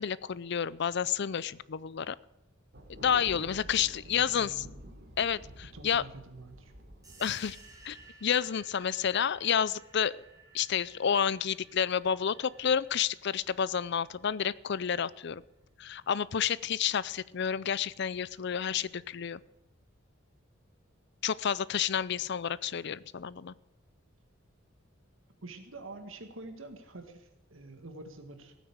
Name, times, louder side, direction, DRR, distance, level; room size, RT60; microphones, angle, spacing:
voice 1, 0.0-2.2 2.9-4.6 5.2-6.0 7.2-7.6 7.8-10.2 10.5-15.4 15.8-19.4 21.2-23.5, left 8 dB, 55° left, 19 dB, 0.5 m, -30 dB
Thunder, 2.7-8.1, equal, 55° right, 3.1 m, -50 dB
voice 2, 3.7-4.7 5.7-6.7 25.4-28.5, right 2 dB, 75° right, 6 dB, 1.9 m, -47 dB
sound 1, 7.0-15.3, right 3 dB, 20° right, 3.0 m, -57 dB
16.5 x 9.4 x 8.1 m, 0.95 s
head